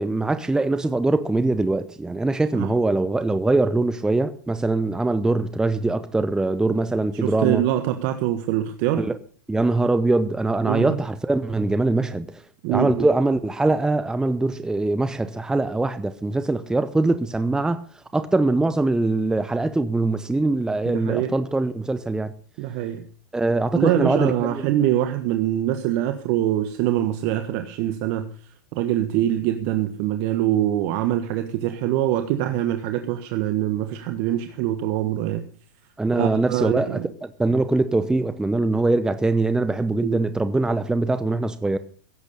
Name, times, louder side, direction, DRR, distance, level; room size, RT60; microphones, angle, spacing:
voice 1, 0.0-7.6 9.0-9.2 9.5-12.3 12.7-17.8 18.1-22.3 23.3-24.7 36.0-41.8, right 2 dB, 5° right, 0.8 m, -22 dB
voice 2, 7.2-9.1 10.6-11.0 12.6-13.1 20.8-21.3 22.6-23.0 23.7-28.2 28.7-35.4 36.1-37.1 40.0-40.2, right 12 dB, 50° right, 1.4 m, -24 dB
16.5 x 8.2 x 6.8 m
hypercardioid pair, 115°, 11 cm